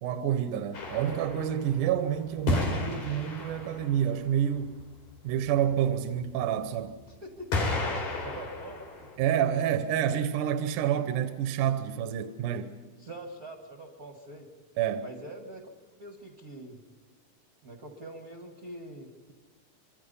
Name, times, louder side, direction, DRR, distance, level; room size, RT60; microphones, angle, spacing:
voice 1, 0.0-4.8 5.2-7.0 9.2-12.8 14.8-15.0, right 10 dB, 80° right, 2.5 m, -28 dB
sound 1, 0.7-1.9 2.5-4.0 6.3-6.4 7.5-9.1, left 2 dB, 65° left, 4.7 m, -32 dB
voice 2, 7.1-7.7 8.2-8.8 13.0-14.5 15.0-15.7 16.0-16.8 17.6-19.3, right 1 dB, 35° right, 1.7 m, -44 dB
27.0 x 23.5 x 5.5 m
omnidirectional pair, 3.6 m